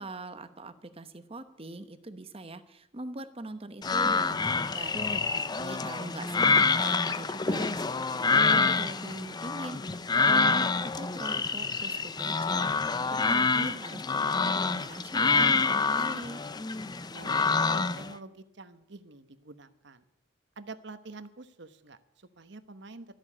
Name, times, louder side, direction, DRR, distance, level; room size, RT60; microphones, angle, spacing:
voice 1, 0.0-16.4, right 2 dB, 30° right, 10 dB, 1.0 m, -42 dB
sound 1, 3.8-18.1, left 4 dB, 20° left, 0.5 m, -27 dB
voice 2, 17.1-20.0 20.6-23.1, right 3 dB, 65° right, 11 dB, 1.1 m, -47 dB
13.5 x 7.9 x 9.8 m, 0.83 s
head